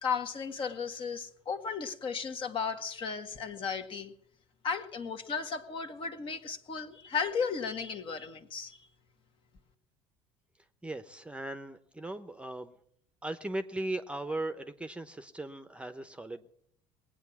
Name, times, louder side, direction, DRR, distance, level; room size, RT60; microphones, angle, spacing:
voice 1, 0.0-4.1 4.6-8.8, left 5 dB, 45° left, 1.7 m, -35 dB
voice 2, 10.8-12.7 13.2-16.5, right 2 dB, 10° right, 0.9 m, -38 dB
20.0 x 8.9 x 7.2 m
hypercardioid pair, 80°, 13 cm